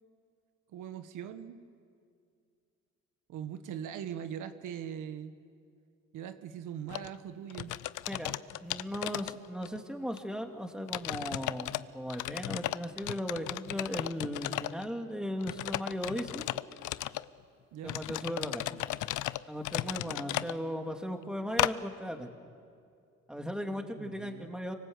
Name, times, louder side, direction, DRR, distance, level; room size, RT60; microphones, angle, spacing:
voice 1, 0.7-1.6 3.3-5.3 6.1-7.7 17.7-18.0 24.0-24.5, right 9 dB, 85° right, 9 dB, 1.4 m, -41 dB
sound 1, 6.9-7.1 7.5-9.8 10.2-10.3 10.9-11.8 12.1-14.9 15.4-17.3 17.9-20.5 21.6-21.7, left 15 dB, 80° left, 0.6 m, -35 dB
voice 2, 8.6-16.4 17.8-18.6 19.5-22.3 23.3-24.7, equal, 5° right, 4 dB, 2.4 m, -37 dB
26.0 x 25.0 x 8.0 m, 2.3 s
cardioid pair, 90°, 30 cm